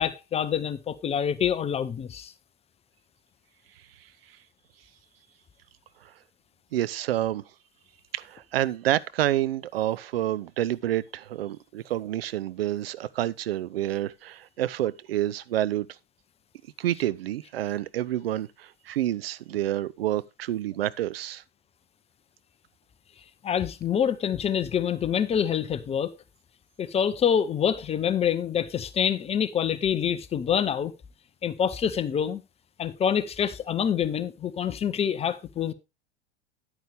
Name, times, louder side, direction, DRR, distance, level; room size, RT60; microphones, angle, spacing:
voice 1, 0.0-2.3 23.4-26.1 26.8-30.9 31.4-32.4 32.8-35.7, left 8 dB, 20° left, 0.7 m, -26 dB
voice 2, 6.7-7.4 8.1-15.9 16.8-21.4, right 13 dB, 60° right, 0.6 m, -28 dB
10.0 x 9.2 x 3.4 m
figure-of-eight pair, 85°, 33 cm